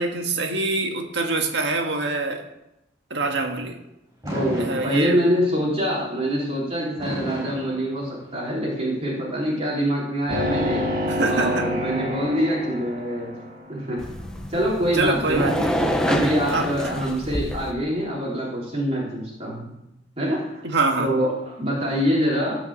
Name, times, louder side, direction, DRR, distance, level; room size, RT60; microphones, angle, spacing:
voice 1, 0.0-2.5 3.1-3.8 4.6-5.2 11.1-11.7 14.9-15.7 16.5-17.0 20.6-21.2, right 3 dB, 65° right, 3 dB, 1.9 m, -25 dB
Fireworks, 4.2-5.5 7.0-8.5, right 1 dB, 15° right, 6.3 m, -32 dB
voice 2, 4.3-10.8 11.3-13.4 13.7-14.0 14.5-15.5 16.0-19.7 20.2-20.6 21.0-21.3 21.6-22.6, equal, 35° right, -4 dB, 3.5 m, -25 dB
sound 1, 10.3-13.7, left 1 dB, 50° right, 2.0 m, -27 dB
sound 2, 14.0-17.7, equal, 5° left, 1.2 m, -27 dB
18.0 x 6.2 x 7.3 m, 0.89 s
head